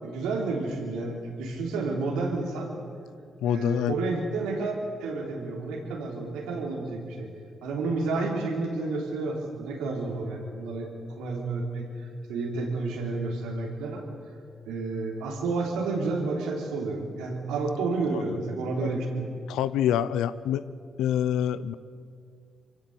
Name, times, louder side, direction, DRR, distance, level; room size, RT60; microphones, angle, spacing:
voice 1, 0.0-2.7 3.4-4.7 5.0-7.3 7.6-14.0 14.6-19.2, right 3 dB, 90° right, 0 dB, 3.5 m, -30 dB
voice 2, 3.4-3.9 18.1-18.2 18.8-18.9 19.5-20.6 21.0-21.7, left 10 dB, 85° left, 15 dB, 0.7 m, -26 dB
24.5 x 15.5 x 8.1 m, 2.3 s
supercardioid pair, 55°, 0 cm